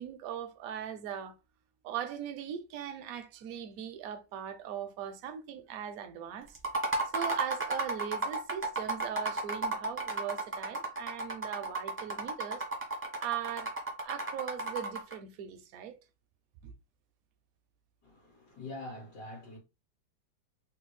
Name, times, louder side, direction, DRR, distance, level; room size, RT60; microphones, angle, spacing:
voice 1, 0.0-1.4 1.8-6.6 7.1-12.6 13.2-13.7 14.0-16.0 16.6-16.7, right 9 dB, 70° right, 0.9 m, -39 dB
sound 1, 6.5-15.2, right 3 dB, 15° right, 0.5 m, -33 dB
voice 2, 18.0-19.6, left 2 dB, 70° left, 1.6 m, -44 dB
3.4 x 2.3 x 3.0 m
omnidirectional pair, 1.8 m